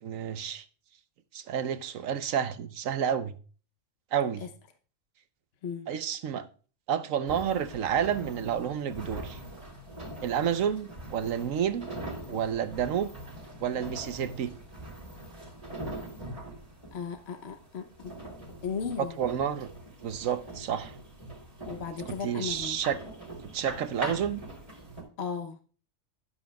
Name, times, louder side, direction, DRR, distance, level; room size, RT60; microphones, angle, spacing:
voice 1, 0.0-0.6 1.3-3.3 4.1-4.4 5.9-6.4 6.9-9.4 10.2-11.9 12.3-13.1 13.6-14.5 19.0-19.7 20.0-20.9 22.2-23.0 23.5-24.4, right 8 dB, 80° right, 1.2 m, -30 dB
sound 1, 7.3-25.0, right 1 dB, 25° right, 3.5 m, -42 dB
voice 2, 16.9-18.1 18.6-19.2 21.6-22.8 25.2-25.6, left 6 dB, 60° left, 1.1 m, -35 dB
12.5 x 11.0 x 2.3 m
omnidirectional pair, 1.4 m